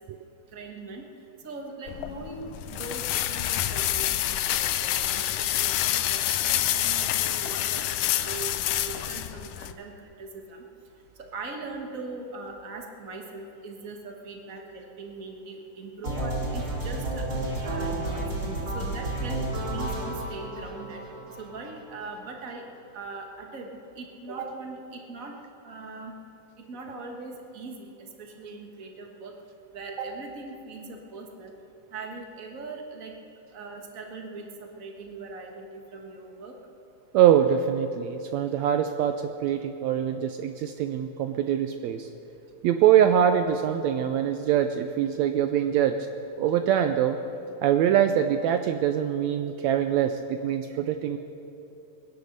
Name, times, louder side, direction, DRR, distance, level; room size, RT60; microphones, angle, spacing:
voice 1, 0.5-1.1 1.4-8.5 8.9-10.6 11.2-17.3 17.6-18.2 18.7-21.0 21.4-22.6 22.9-23.7 24.0-25.3 25.6-26.2 26.6-27.9 28.2-29.3 29.7-31.5 31.9-33.1 33.5-36.5, right 3 dB, 55° right, 2 dB, 0.9 m, -40 dB
sound 1, 1.9-9.7, left 13 dB, 80° left, 1.6 m, -27 dB
sound 2, 16.0-22.0, right 2 dB, 30° right, 4.5 m, -31 dB
voice 2, 37.1-42.1 42.6-46.0 46.4-47.2 47.6-51.2, right 9 dB, 90° right, 8 dB, 1.6 m, -23 dB
20.5 x 10.5 x 6.7 m, 2.8 s
omnidirectional pair, 3.7 m